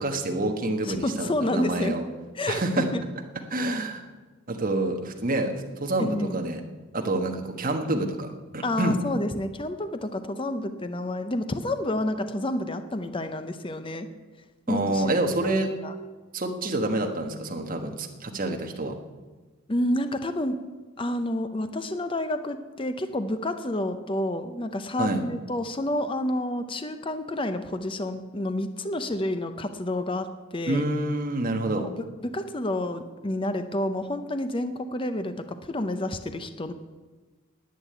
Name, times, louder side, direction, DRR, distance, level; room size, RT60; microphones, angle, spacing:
voice 1, 0.0-2.0 2.5-2.9 3.5-4.0 4.5-6.6 6.9-8.3 8.5-9.0 14.7-15.7 16.3-18.9 25.0-25.2 30.7-31.9, right 2 dB, 40° right, 3 dB, 1.3 m, -27 dB
voice 2, 0.8-2.0 2.3-3.0 6.0-6.4 8.6-14.1 14.7-15.1 15.4-15.9 19.7-20.7 21.0-30.8 31.5-31.9 32.2-36.7, left 1 dB, 25° left, 9 dB, 0.6 m, -29 dB
11.0 x 8.6 x 9.5 m, 1.3 s
head